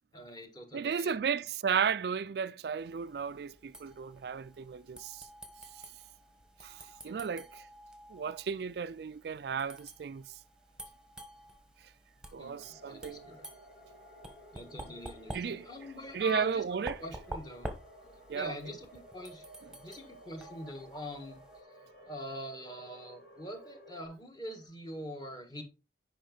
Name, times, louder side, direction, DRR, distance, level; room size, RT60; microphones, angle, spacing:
voice 1, 0.1-1.4 7.0-7.4 12.4-13.5 14.5-17.7 18.3-19.5 19.8-21.4 22.0-25.6, left 1 dB, 20° left, 1.6 m, -44 dB
voice 2, 0.7-5.3 6.6-6.8 7.0-7.6 8.1-10.2 12.3-13.2 15.3-15.7 16.1-17.0 18.3-18.5, right 6 dB, 65° right, 0.3 m, -34 dB
sound 1, 2.8-21.6, right 1 dB, 5° right, 1.1 m, -49 dB
sound 2, 12.4-24.1, equal, 65° left, 3.6 m, -55 dB
10.0 x 5.2 x 3.9 m
head